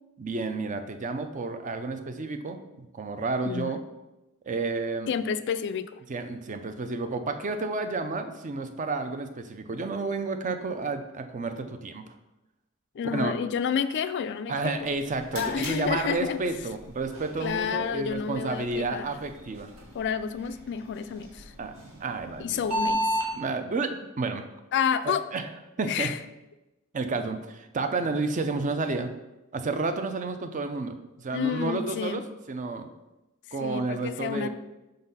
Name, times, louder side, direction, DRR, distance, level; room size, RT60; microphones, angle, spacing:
voice 1, 0.2-3.8 4.5-5.1 6.1-12.1 13.0-13.3 14.5-19.7 21.6-22.6 23.3-24.5 25.0-25.5 25.8-26.1 26.9-29.1 29.5-32.9 33.5-34.5, right 3 dB, 35° right, 8 dB, 0.5 m, -31 dB
voice 2, 3.4-3.8 5.1-6.0 12.9-14.9 15.3-16.4 17.4-19.1 19.9-21.5 22.4-23.0 24.7-25.2 25.8-26.2 31.3-32.2 33.6-34.5, left 7 dB, 50° left, 12 dB, 0.3 m, -30 dB
sound 1, 14.8-23.3, right 1 dB, 85° right, 1.8 m, -36 dB
5.2 x 3.9 x 5.5 m, 0.99 s
head